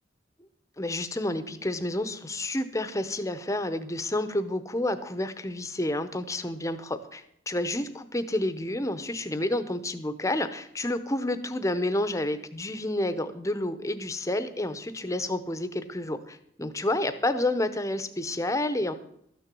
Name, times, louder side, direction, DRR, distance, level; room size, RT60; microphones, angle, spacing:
voice 1, 0.8-19.0, left 1 dB, 15° left, 12 dB, 0.7 m, -29 dB
13.0 x 6.8 x 7.5 m, 0.71 s
head